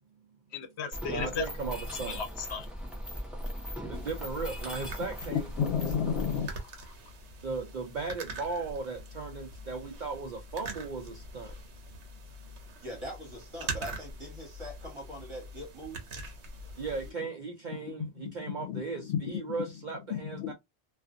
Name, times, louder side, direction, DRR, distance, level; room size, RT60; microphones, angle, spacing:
voice 1, 0.5-1.5 2.1-2.7 5.3-6.8 17.7-19.4 20.1-20.5, left 7 dB, 75° left, 0.9 m, -33 dB
Mechanisms, 0.9-6.4, equal, ahead, 0.7 m, -38 dB
voice 2, 1.0-2.2 3.9-5.5 5.8-5.9 7.4-11.5 16.7-20.5, right 4 dB, 55° right, 0.6 m, -37 dB
sound 1, 3.9-17.1, right 2 dB, 75° right, 1.0 m, -44 dB
voice 3, 12.8-16.1, equal, 25° right, 1.4 m, -42 dB
2.4 x 2.4 x 2.5 m
omnidirectional pair, 1.2 m